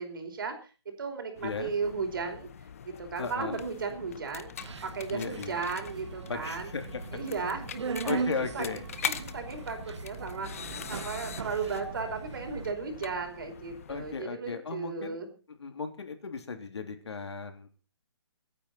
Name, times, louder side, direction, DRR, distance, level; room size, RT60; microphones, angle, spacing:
voice 1, 0.0-2.5 2.8-6.7 7.1-8.3 8.5-8.7 9.0-15.3, right 5 dB, 50° right, 5 dB, 4.8 m, -35 dB
voice 2, 1.4-1.7 3.2-3.6 5.1-5.6 6.3-7.1 8.0-8.9 13.9-15.2 15.6-17.7, left 5 dB, 70° left, 7 dB, 3.2 m, -36 dB
sound 1, 1.4-14.2, left 8 dB, 30° left, 0.8 m, -43 dB
Subway metro underground, 4.6-12.7, right 5 dB, 85° right, 0.9 m, -39 dB
24.5 x 9.6 x 4.3 m, 0.35 s
hypercardioid pair, 175°, 14 cm